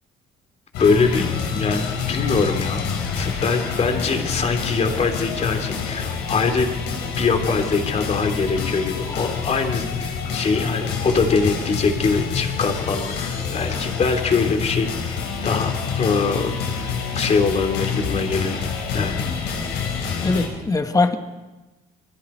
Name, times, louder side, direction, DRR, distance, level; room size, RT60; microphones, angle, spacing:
sound 1, 0.7-20.5, left 6 dB, 90° left, 4.8 m, -27 dB
voice 1, 0.8-6.8 7.2-18.6 18.9-19.6, left 4 dB, 40° left, 5 dB, 3.1 m, -23 dB
voice 2, 20.2-21.2, left 3 dB, 20° left, 7 dB, 1.8 m, -20 dB
27.5 x 22.0 x 4.6 m, 1.1 s
cardioid pair, 110°, 17 cm